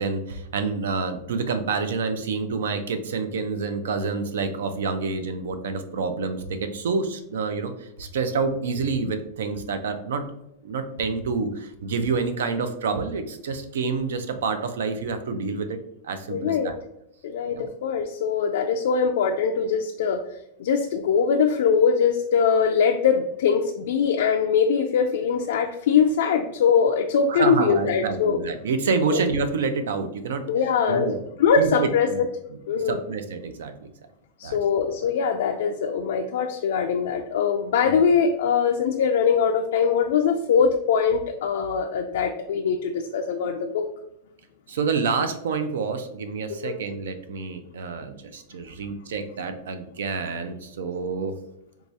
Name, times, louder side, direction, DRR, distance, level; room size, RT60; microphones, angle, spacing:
voice 1, 0.0-10.2 10.6-15.8 16.0-16.8 17.5-17.7 27.3-30.4 30.9-31.2 31.6-32.2 32.8-33.9 34.4-34.6 37.9-38.0 44.7-51.3, right 4 dB, 90° right, 9 dB, 0.5 m, -28 dB
voice 2, 16.3-16.7 17.2-17.6 17.8-20.2 20.6-28.4 29.1-29.2 30.5-31.1 31.4-32.3 32.7-33.0 34.4-43.8 46.6-46.7, left 6 dB, 75° left, 3 dB, 0.3 m, -22 dB
4.6 x 2.3 x 2.6 m, 0.81 s
supercardioid pair, 155°, 0 cm